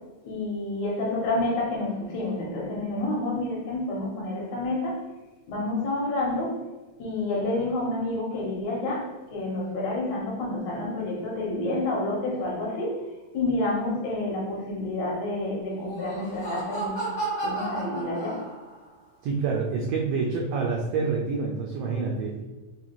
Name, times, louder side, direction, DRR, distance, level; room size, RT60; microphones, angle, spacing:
voice 1, 0.2-5.0 5.5-6.6 7.0-13.0 13.3-17.0 17.4-18.4, left 2 dB, 75° left, -2 dB, 2.3 m, -29 dB
Laughter, 15.7-18.9, right 3 dB, 55° left, 0.8 m, -33 dB
voice 2, 19.2-22.4, right 4 dB, 85° right, -1 dB, 1.4 m, -27 dB
5.4 x 2.3 x 2.9 m, 1.2 s
omnidirectional pair, 3.4 m